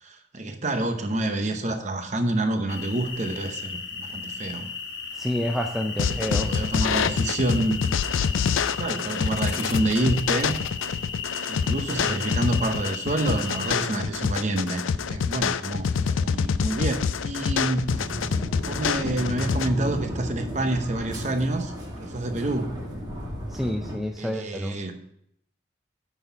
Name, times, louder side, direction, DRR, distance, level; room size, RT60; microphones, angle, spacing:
voice 1, 0.0-4.7 6.1-7.9 8.8-10.6 11.5-18.0 18.6-22.8 24.2-25.0, right 2 dB, 35° right, 7 dB, 0.8 m, -28 dB
sound 1, 2.7-13.7, left 5 dB, 60° left, 1.2 m, -35 dB
voice 2, 5.1-6.6 23.5-24.8, equal, ahead, 3 dB, 0.4 m, -29 dB
sound 2, 6.0-19.7, left 6 dB, 90° left, 0.4 m, -26 dB
sound 3, 17.9-24.0, equal, 20° right, 1.6 m, -34 dB
9.2 x 4.2 x 5.7 m, 0.73 s
head